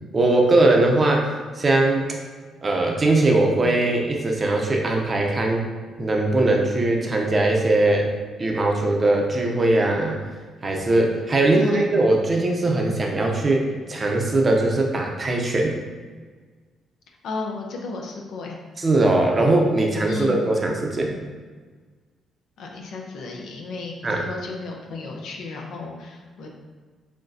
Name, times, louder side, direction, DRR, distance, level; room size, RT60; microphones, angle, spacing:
voice 1, 0.1-2.2 2.6-5.7 6.0-8.1 8.4-10.2 10.6-15.8 18.8-21.1 24.0-24.2, right 2 dB, 35° right, 1 dB, 0.6 m, -20 dB
voice 2, 11.5-11.9 17.2-18.6 20.1-20.4 22.6-26.5, left 3 dB, 75° left, 1 dB, 0.6 m, -33 dB
6.0 x 2.2 x 2.6 m, 1.5 s
cardioid pair, 90°, 0 cm